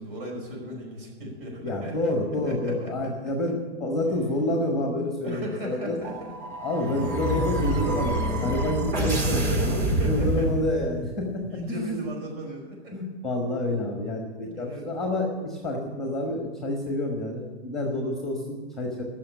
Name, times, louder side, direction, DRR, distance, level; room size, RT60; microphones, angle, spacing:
voice 1, 0.0-2.0 2.4-3.1 5.2-6.3 9.4-10.5 11.5-12.9 14.4-14.9 18.4-18.7, right 1 dB, 55° right, 1 dB, 5.1 m, -36 dB
voice 2, 1.6-6.0 6.6-9.7 10.0-11.4 11.7-12.0 12.9-19.0, left 1 dB, ahead, 1 dB, 1.2 m, -28 dB
sound 1, 6.0-11.0, right 1 dB, 90° right, 4.9 m, -27 dB
14.5 x 6.3 x 10.0 m, 1.3 s
supercardioid pair, 175°, 35 cm